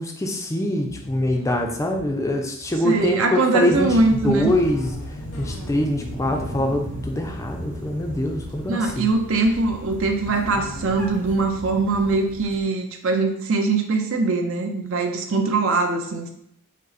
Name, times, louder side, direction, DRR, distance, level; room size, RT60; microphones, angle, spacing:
voice 1, 0.0-4.0 4.2-4.9 5.4-9.1, left 1 dB, 15° left, 2 dB, 0.4 m, -24 dB
sound 1, 0.9-9.1 10.3-11.1, left 1 dB, 75° left, 0.8 m, -42 dB
voice 2, 2.8-4.5 8.7-16.3, right 3 dB, 60° right, 4 dB, 0.6 m, -22 dB
sound 2, 3.7-12.6, equal, 40° right, 0.9 m, -36 dB
5.1 x 2.1 x 4.0 m, 0.74 s
head